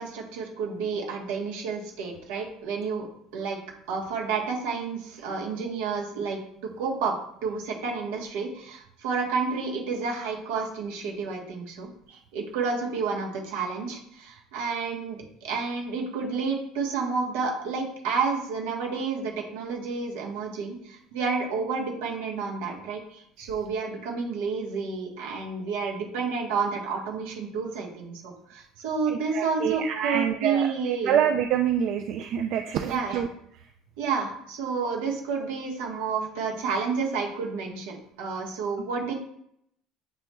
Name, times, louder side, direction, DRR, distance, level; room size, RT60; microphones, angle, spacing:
voice 1, 0.0-3.1 3.3-3.6 3.9-6.4 6.8-7.1 7.4-31.2 32.9-33.2 34.0-39.1, right 5 dB, 90° right, 0 dB, 1.1 m, -30 dB
voice 2, 29.1-33.3 39.0-39.1, right 9 dB, 65° right, 5 dB, 0.3 m, -27 dB
7.3 x 3.0 x 2.2 m, 0.72 s
supercardioid pair, 110°, 0 cm